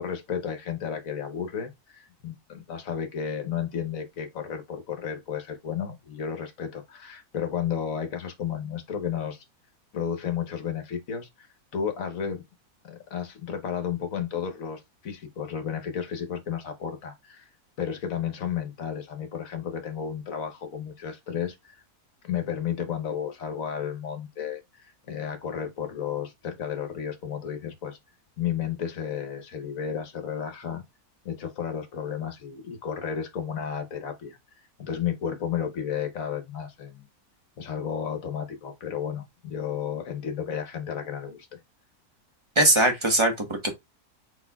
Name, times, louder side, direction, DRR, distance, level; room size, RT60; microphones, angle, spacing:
voice 1, 0.0-9.4 9.9-11.5 11.7-12.4 12.9-17.5 17.8-21.8 22.2-28.0 28.4-30.8 31.2-34.4 34.8-37.1 37.6-41.6, left 8 dB, 65° left, 1.3 m, -32 dB
voice 2, 42.6-43.7, right 1 dB, 20° right, 1.0 m, -21 dB
4.4 x 4.3 x 2.3 m
omnidirectional pair, 1.6 m